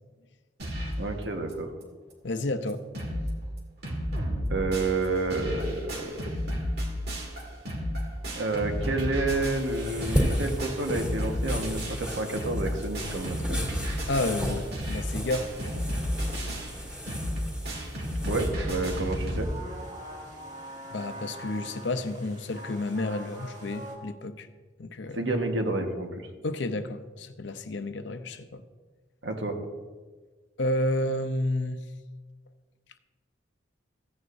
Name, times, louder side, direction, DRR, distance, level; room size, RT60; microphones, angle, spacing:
sound 1, 0.6-1.1 1.5-1.6 1.8-1.9 2.4-2.5 2.7-3.3 3.6-19.4, equal, 55° right, 1.9 m, -32 dB
voice 1, 1.0-1.7 4.5-6.1 8.4-13.6 18.3-19.5 25.1-26.3 29.2-29.5, right 2 dB, 75° right, 1.4 m, -29 dB
voice 2, 2.2-2.8 14.1-15.5 20.9-24.5 24.8-25.3 26.4-28.6 30.6-31.8, left 1 dB, 70° left, 0.6 m, -30 dB
sound 2, 9.5-18.5, equal, 5° right, 2.8 m, -34 dB
sound 3, 18.6-24.0, right 1 dB, 40° right, 1.6 m, -43 dB
15.0 x 9.5 x 2.6 m
head